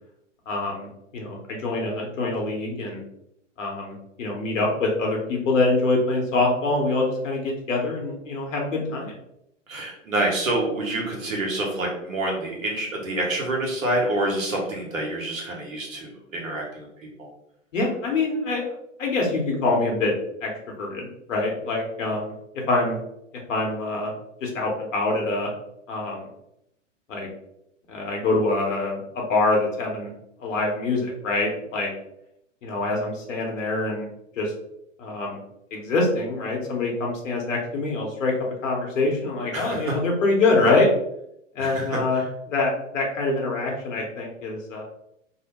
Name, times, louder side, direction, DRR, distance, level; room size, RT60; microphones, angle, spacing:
voice 1, 0.5-0.9 1.1-3.0 3.6-9.1 17.7-18.6 19.0-20.1 20.4-20.5 20.8-22.3 22.7-23.0 23.5-24.1 24.4-25.5 25.9-26.2 27.1-27.3 27.9-30.1 30.4-31.9 32.6-34.1 34.4-34.5 35.0-35.4 35.7-38.3 38.6-40.9 41.5-42.2 42.5-44.8, left 2 dB, 70° left, 0 dB, 1.0 m, -25 dB
voice 2, 9.7-17.3 22.1-22.2 39.5-40.0 41.6-42.3, right 1 dB, 85° right, -1 dB, 1.0 m, -27 dB
2.8 x 2.0 x 2.9 m, 0.78 s
hypercardioid pair, 105°, 39 cm